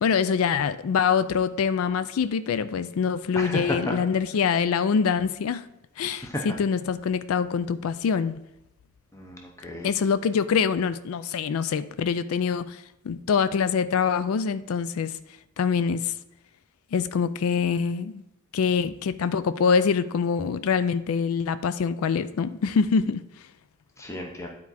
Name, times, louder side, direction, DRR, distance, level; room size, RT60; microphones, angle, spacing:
voice 1, 0.0-5.7 6.0-8.3 9.8-15.2 15.6-16.1 16.9-18.2 18.5-23.2, left 6 dB, 75° left, 14 dB, 0.4 m, -25 dB
voice 2, 3.3-4.0 6.1-6.4 9.1-9.9 24.0-24.5, left 1 dB, 15° left, 1 dB, 0.7 m, -32 dB
9.6 x 4.6 x 4.1 m, 0.88 s
head